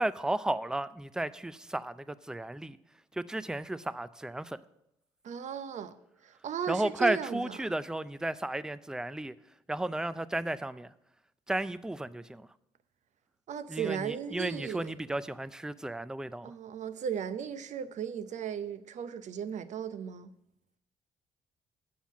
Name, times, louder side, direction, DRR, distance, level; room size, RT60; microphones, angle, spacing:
voice 1, 0.0-2.8 3.1-4.6 6.7-9.3 9.7-10.9 11.5-12.5 13.7-16.5, right 1 dB, 5° right, 0.4 m, -33 dB
voice 2, 5.2-5.9 6.2-7.6 13.5-14.9 16.4-20.3, right 8 dB, 55° right, 0.6 m, -36 dB
7.1 x 5.6 x 7.3 m
hypercardioid pair, 50°, 15 cm